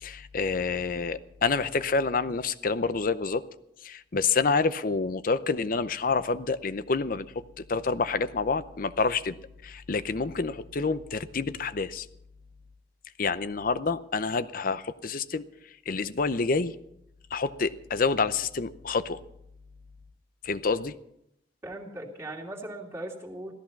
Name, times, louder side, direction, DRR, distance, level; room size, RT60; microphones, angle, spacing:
voice 1, 0.0-3.4 3.8-7.3 7.6-9.4 9.6-12.1 13.2-15.5 15.9-16.7 17.3-19.2 20.4-21.0, left 4 dB, 50° left, 14 dB, 0.7 m, -28 dB
voice 2, 21.6-23.5, right 1 dB, 15° right, -1 dB, 2.6 m, -38 dB
16.0 x 13.5 x 5.9 m, 0.79 s
head